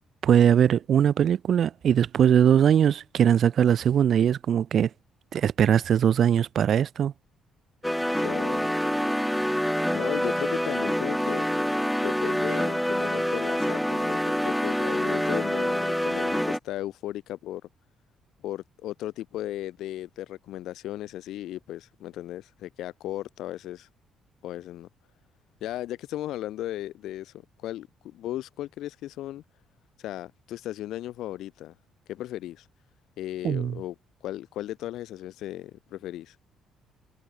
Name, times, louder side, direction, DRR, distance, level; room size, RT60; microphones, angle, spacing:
voice 1, 0.2-4.9 5.3-7.1 33.4-33.8, right 9 dB, 55° right, 2.6 m, -21 dB
sound 1, 7.8-16.6, equal, ahead, 0.8 m, -26 dB
voice 2, 8.1-8.6 9.9-11.5 12.0-17.6 18.4-23.9 24.4-24.9 25.6-27.3 27.6-29.4 30.0-31.7 32.1-32.6 33.2-33.9 34.2-36.4, left 14 dB, 80° left, 7.6 m, -36 dB
cardioid pair, 100°, 0 cm